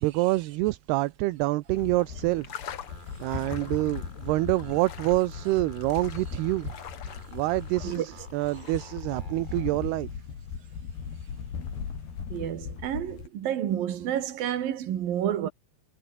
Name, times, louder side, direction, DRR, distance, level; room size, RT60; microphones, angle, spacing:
voice 1, 0.0-2.6 3.2-6.7 7.3-10.1, right 19 dB, 75° right, 2.6 m, -27 dB
sound 1, 1.7-9.3, left 9 dB, 80° left, 1.2 m, -46 dB
sound 2, 1.7-13.3, left 6 dB, 60° left, 5.9 m, -38 dB
sound 3, 2.8-9.8, right 1 dB, 10° right, 6.0 m, -51 dB
voice 2, 12.3-15.5, right 10 dB, 60° right, 3.5 m, -30 dB
omnidirectional pair, 5.1 m